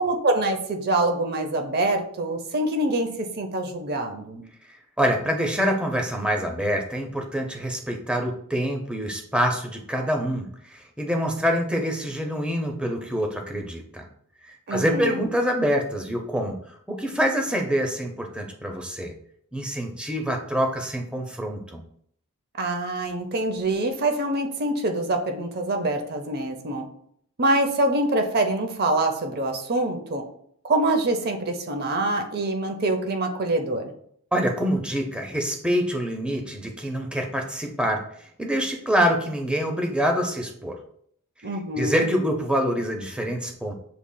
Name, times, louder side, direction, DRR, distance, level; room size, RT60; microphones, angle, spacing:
voice 1, 0.0-4.4 14.7-15.3 22.6-26.9 27.4-30.2 30.6-33.9 41.4-42.1, right 2 dB, 45° right, 5 dB, 0.6 m, -25 dB
voice 2, 4.7-14.1 14.4-19.1 19.5-21.8 34.3-40.8 41.4-41.5 41.8-43.7, equal, 5° right, 2 dB, 0.6 m, -26 dB
6.9 x 3.0 x 2.2 m, 0.66 s
head